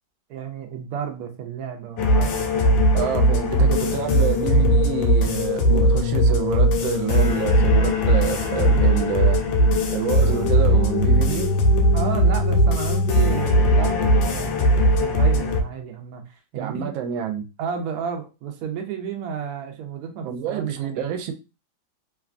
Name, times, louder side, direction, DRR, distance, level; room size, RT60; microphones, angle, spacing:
voice 1, 0.3-2.7 11.9-16.9 17.6-21.0, right 6 dB, 70° right, 0.9 m, -32 dB
sound 1, 2.0-15.6, equal, 80° left, 1.3 m, -19 dB
voice 2, 2.9-9.4 9.9-11.6 16.6-17.5 20.2-21.3, right 9 dB, 85° right, 1.3 m, -27 dB
3.1 x 2.3 x 2.4 m
omnidirectional pair, 2.1 m